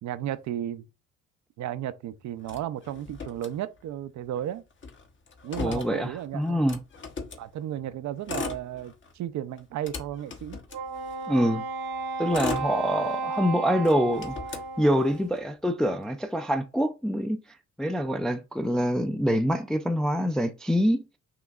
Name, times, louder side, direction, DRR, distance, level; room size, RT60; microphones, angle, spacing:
voice 1, 0.0-0.9 1.6-4.6 5.4-6.7 7.4-10.6, right 11 dB, 70° right, 0.6 m, -34 dB
Motor vehicle (road), 2.4-4.1 4.4-4.5 4.7-7.5 8.1-9.2 9.6-11.4 12.0-13.4 13.8-15.4, left 5 dB, 40° left, 1.0 m, -38 dB
voice 2, 5.6-6.8 11.3-11.6 12.2-14.4 14.8-17.4 17.8-21.0, equal, ahead, 0.4 m, -25 dB
Wind instrument woodwind instrument, 10.7-15.3, right 4 dB, 90° right, 1.4 m, -33 dB
5.9 x 3.0 x 2.4 m
cardioid pair, 90°, 30 cm